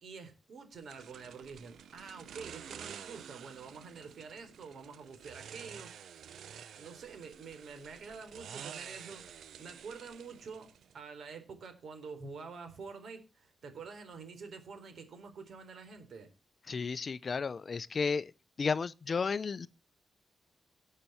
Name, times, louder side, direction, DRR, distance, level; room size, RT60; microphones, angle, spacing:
voice 1, 0.0-6.0 6.8-10.7 10.9-16.3, right 5 dB, 65° right, 3.9 m, -47 dB
sound 1, 0.9-11.0, right 8 dB, 85° right, 0.8 m, -50 dB
voice 2, 16.7-18.3 18.6-19.7, left 5 dB, 40° left, 0.6 m, -33 dB
18.0 x 6.7 x 4.4 m
wide cardioid pair, 130°, 0 cm